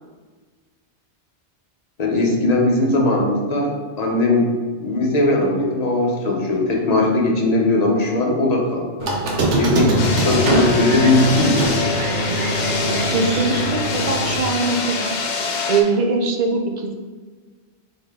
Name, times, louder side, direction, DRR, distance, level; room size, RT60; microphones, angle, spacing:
voice 1, 2.0-4.5 4.8-9.1 9.6-11.7, left 2 dB, 40° left, -1 dB, 0.8 m, -19 dB
Squeak, 9.0-14.4, right 1 dB, 85° right, 1.1 m, -22 dB
sound 1, 10.0-15.8, left 4 dB, 80° left, 0.9 m, -25 dB
voice 2, 12.9-15.1 15.7-16.9, right 4 dB, 55° right, 3 dB, 0.5 m, -22 dB
3.9 x 3.8 x 3.5 m, 1.4 s
omnidirectional pair, 1.1 m